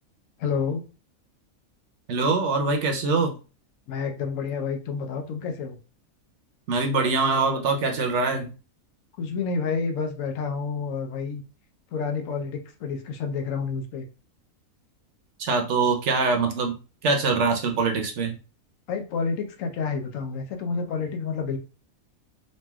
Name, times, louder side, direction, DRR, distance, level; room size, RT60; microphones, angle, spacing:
voice 1, 0.4-0.8 3.9-5.8 9.2-11.4 11.9-14.1 18.9-21.6, left 5 dB, 75° left, 5 dB, 0.9 m, -29 dB
voice 2, 2.1-3.3 6.7-8.5 15.4-16.8 17.0-18.3, right 4 dB, 65° right, 4 dB, 0.8 m, -23 dB
3.1 x 2.6 x 2.2 m, 0.33 s
omnidirectional pair, 1.5 m